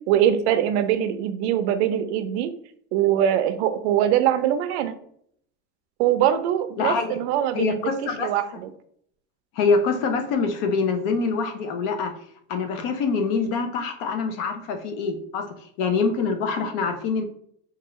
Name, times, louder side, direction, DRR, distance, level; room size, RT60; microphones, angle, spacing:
voice 1, 0.1-2.5 2.9-5.0 6.0-7.8 8.2-8.4, right 10 dB, 80° right, 10 dB, 0.5 m, -22 dB
voice 2, 6.8-7.2 7.5-8.3 9.5-12.1 12.5-15.5 15.8-17.2, left 4 dB, 55° left, 6 dB, 0.7 m, -25 dB
4.4 x 2.4 x 3.0 m, 0.66 s
cardioid pair, 170°, 33 cm